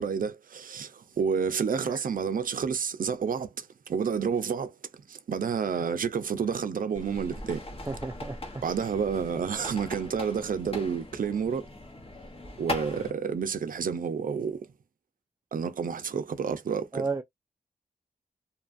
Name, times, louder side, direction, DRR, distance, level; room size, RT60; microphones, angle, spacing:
voice 1, 0.0-4.7 5.1-7.6 8.6-11.7 12.6-14.7 15.5-17.0, right 6 dB, 70° right, 0.5 m, -30 dB
sound 1, 6.9-13.1, left 2 dB, 40° left, 1.0 m, -40 dB
voice 2, 7.9-8.6 16.9-17.2, right 4 dB, 20° right, 0.4 m, -33 dB
2.8 x 2.4 x 2.5 m
cardioid pair, 60°, 15 cm